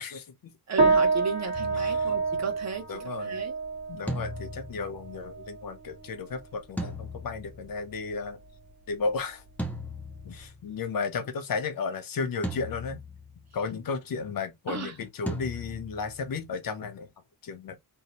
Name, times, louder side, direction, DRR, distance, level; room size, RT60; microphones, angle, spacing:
voice 1, 0.0-0.5 1.8-2.1 2.9-3.4 3.9-8.4 8.9-9.4 10.2-13.0 13.5-17.1 17.4-17.8, left 4 dB, 60° left, 0.6 m, -34 dB
voice 2, 0.7-2.8 3.2-3.5 14.7-14.9, right 4 dB, 45° right, 0.6 m, -34 dB
sound 1, 0.8-10.4, right 4 dB, 80° right, 1.2 m, -30 dB
sound 2, 1.5-2.8 4.1-5.8 6.8-8.1 9.6-11.0 12.4-13.6 15.3-16.7, equal, 5° left, 0.4 m, -38 dB
2.7 x 2.0 x 2.7 m
wide cardioid pair, 180°, 38 cm